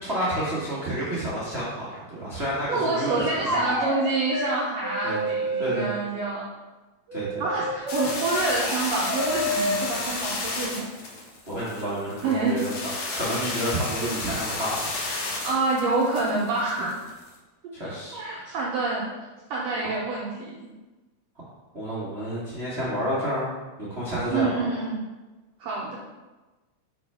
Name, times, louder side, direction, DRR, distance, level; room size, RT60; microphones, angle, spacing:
voice 1, 0.0-3.5 5.0-5.2 5.6-5.9 7.1-7.4 11.5-14.9 17.7-18.5 21.7-23.5 23.8-24.5, equal, 50° right, -10 dB, 0.7 m, -30 dB
voice 2, 2.7-6.5 7.4-10.9 12.2-12.6 15.4-16.9 17.8-19.1 19.5-20.6 24.3-25.0 25.6-26.0, right 3 dB, 70° right, -4 dB, 1.7 m, -27 dB
sound 1, 3.1-4.0 4.3-4.5 4.8-5.8 7.1-9.8, equal, 30° right, 1.1 m, -29 dB
sound 2, 7.9-17.3, left 3 dB, 75° left, 1.1 m, -32 dB
4.3 x 4.1 x 5.4 m, 1.2 s
omnidirectional pair, 3.5 m